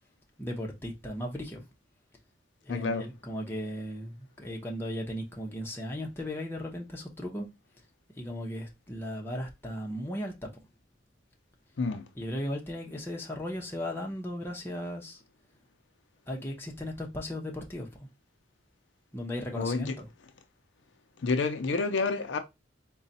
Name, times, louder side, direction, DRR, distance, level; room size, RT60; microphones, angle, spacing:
voice 1, 0.4-1.6 2.6-7.5 8.2-10.5 12.1-15.2 16.3-17.9 19.1-20.1, equal, 10° left, 0.7 m, -36 dB
voice 2, 2.7-3.1 11.8-12.0 19.6-19.9 21.2-22.4, left 4 dB, 70° left, 0.5 m, -29 dB
3.9 x 2.3 x 4.0 m
head